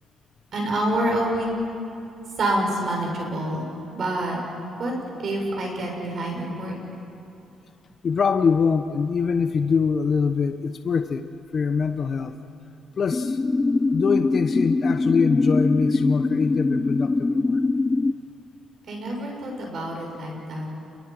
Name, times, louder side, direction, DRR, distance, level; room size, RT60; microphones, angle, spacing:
voice 1, 0.5-1.5 2.4-4.4 4.8-4.9 5.2-6.7 18.9-20.7, right 1 dB, 55° right, 0 dB, 7.3 m, -27 dB
voice 2, 8.0-12.3 13.0-13.4 13.9-17.6, left 5 dB, 50° left, 8 dB, 1.0 m, -23 dB
sound 1, 13.1-18.1, left 3 dB, 25° left, 0.5 m, -22 dB
29.0 x 23.0 x 6.1 m, 2.7 s
cardioid pair, 90°, 0 cm